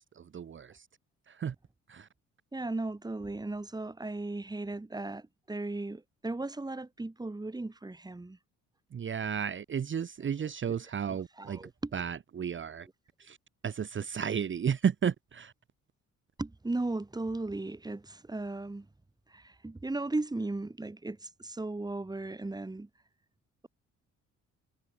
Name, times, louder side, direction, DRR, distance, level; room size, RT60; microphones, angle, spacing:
voice 1, 0.2-0.8 1.3-1.5 1.9-2.1 8.9-11.6 11.9-12.9 13.2-13.4 13.6-15.5, right 7 dB, 40° right, 1.1 m, -33 dB
voice 2, 2.5-8.4 10.4-10.7 11.1-12.0 16.4-18.9 19.3-22.9, right 2 dB, 15° right, 2.0 m, -36 dB
cardioid pair, 90°, 30 cm